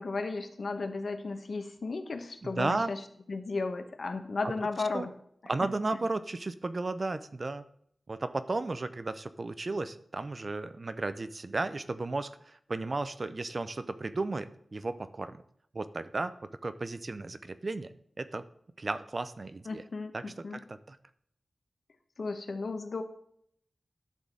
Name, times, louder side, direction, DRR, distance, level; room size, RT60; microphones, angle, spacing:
voice 1, 0.0-3.0 3.3-5.1 5.6-6.0 19.6-20.6 22.2-23.0, left 3 dB, 70° left, 7 dB, 1.0 m, -35 dB
voice 2, 2.4-2.9 4.9-5.1 5.5-7.6 8.1-15.4 15.7-17.9 18.2-18.4 18.8-19.8 20.1-20.2 20.9-21.0, right 3 dB, 45° right, 12 dB, 0.6 m, -34 dB
11.5 x 4.0 x 7.5 m, 0.68 s
wide cardioid pair, 90°, 0 cm